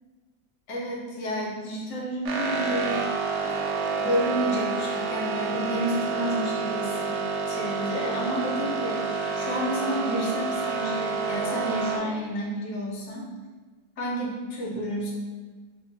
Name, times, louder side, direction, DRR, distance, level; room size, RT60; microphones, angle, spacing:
voice 1, 0.7-3.1 4.0-7.2 7.5-13.2 14.0-15.1, equal, 70° left, -3 dB, 1.2 m, -30 dB
sound 1, 2.3-12.0, right 4 dB, 75° right, 1.1 m, -29 dB
2.8 x 2.5 x 3.3 m, 1.4 s
omnidirectional pair, 1.9 m